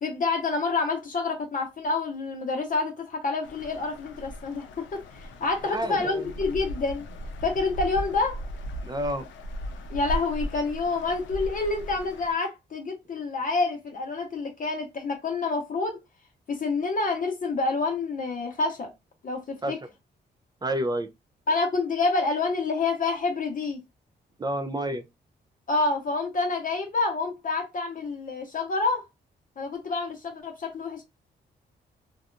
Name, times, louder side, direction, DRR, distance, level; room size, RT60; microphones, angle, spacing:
voice 1, 0.0-7.0 7.4-8.4 9.9-16.0 16.5-18.9 19.2-19.8 21.5-23.8 25.7-29.1 29.6-31.0, left 3 dB, 45° left, 0.7 m, -28 dB
sound 1, 3.4-12.3, equal, 90° left, 0.5 m, -37 dB
voice 2, 5.6-6.3 8.8-9.2 19.6-19.7 20.6-21.1 24.4-25.0, right 1 dB, 20° right, 0.3 m, -29 dB
2.7 x 2.2 x 2.4 m
cardioid pair, 80°, 19 cm